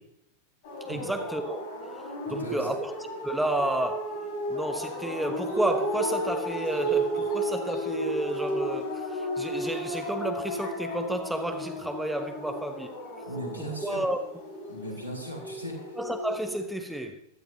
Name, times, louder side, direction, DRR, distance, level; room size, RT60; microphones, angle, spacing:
sound 1, 0.6-16.6, right 1 dB, 50° left, 5.3 m, -33 dB
voice 1, 0.8-1.6 1.9-4.2 4.5-12.9 13.6-14.2 16.0-17.2, right 1 dB, 5° right, 1.1 m, -31 dB
voice 2, 2.3-2.7 13.3-14.0 14.7-15.9, equal, 80° right, 5.0 m, -38 dB
15.5 x 12.5 x 2.9 m
figure-of-eight pair, 90°, 0 cm